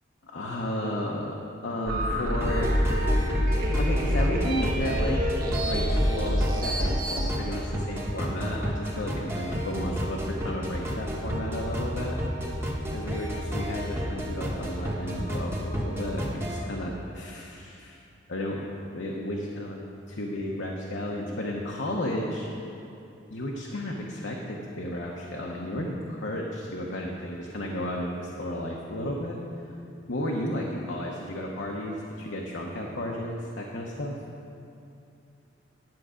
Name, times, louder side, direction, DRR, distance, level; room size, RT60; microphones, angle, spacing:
voice 1, 0.2-3.1 3.7-5.2 5.6-12.2 12.5-12.6 12.9-18.0 18.3-19.8 20.1-22.5 23.3-29.4 30.1-34.2, left 1 dB, 65° left, -2 dB, 0.9 m, -33 dB
sound 1, 1.9-7.3, equal, 45° right, 1.1 m, -26 dB
sound 2, 2.4-16.6, equal, 15° right, 1.1 m, -32 dB
10.5 x 7.4 x 5.0 m, 2.7 s
head